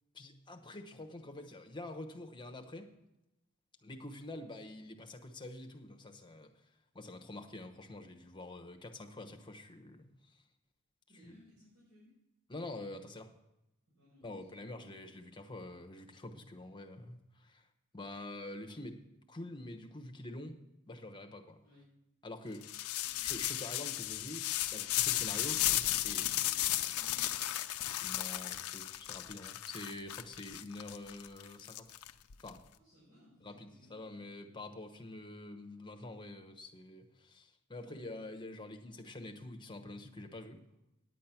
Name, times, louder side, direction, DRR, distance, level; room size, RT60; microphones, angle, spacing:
voice 1, 0.1-2.9 3.8-6.6 6.9-10.4 11.2-11.3 12.5-13.3 14.2-17.7 17.9-20.6 20.9-21.6 22.2-22.7 23.2-25.7 26.0-26.2 28.0-31.9 32.4-32.6 33.4-40.6, left 2 dB, 20° left, 6 dB, 1.0 m, -46 dB
voice 2, 11.1-12.2 13.9-14.8 21.6-21.9 23.0-23.3 25.8-27.4 32.8-34.3 37.7-38.0, left 1 dB, 70° right, -8 dB, 4.8 m, -62 dB
sound 1, 22.6-32.5, left 14 dB, 80° left, 0.5 m, -35 dB
9.6 x 8.4 x 5.9 m, 0.92 s
head